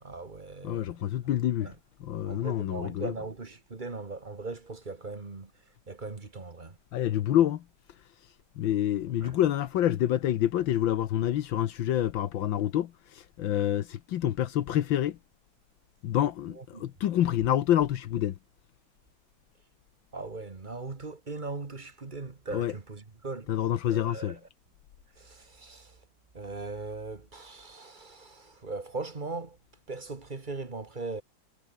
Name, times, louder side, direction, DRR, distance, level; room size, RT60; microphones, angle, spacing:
voice 1, 0.0-1.0 1.6-1.7 2.2-5.5 5.9-6.8 9.2-9.4 16.5-16.8 20.1-23.5 23.9-24.4 25.2-26.0 26.3-29.6 29.9-31.2, right 3 dB, 25° right, 1.7 m, -39 dB
voice 2, 0.6-1.7 2.0-3.1 6.9-7.6 8.6-15.2 16.0-18.4 22.5-22.7 23.5-24.4, left 12 dB, 75° left, 1.7 m, -27 dB
omnidirectional pair, 2.1 m